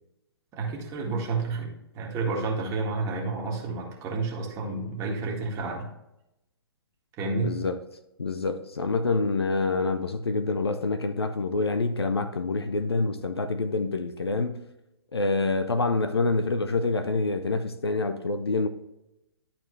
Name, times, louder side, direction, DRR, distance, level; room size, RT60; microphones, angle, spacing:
voice 1, 0.5-5.9 7.2-7.5, right 3 dB, 25° right, 1.8 m, -30 dB
voice 2, 7.3-7.8 8.2-14.6 15.1-18.7, left 3 dB, 80° left, 0.7 m, -27 dB
11.5 x 4.3 x 3.2 m
figure-of-eight pair, 125°, 13 cm